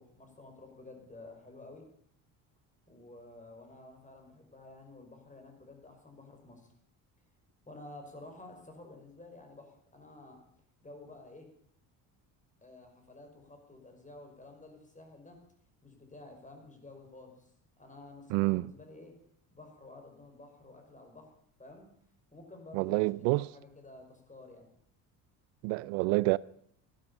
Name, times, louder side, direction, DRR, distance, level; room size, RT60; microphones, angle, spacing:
voice 1, 0.0-1.9 2.9-6.7 7.7-10.4 10.8-11.5 12.6-15.4 15.8-17.5 17.8-19.2 19.5-21.3 21.6-21.9 22.3-23.1 23.4-24.7, left 2 dB, 15° left, 5.5 m, -51 dB
voice 2, 18.3-18.7 22.7-23.5 25.6-26.4, right 23 dB, 90° right, 0.5 m, -28 dB
16.0 x 11.5 x 7.1 m
supercardioid pair, 90°, 43 cm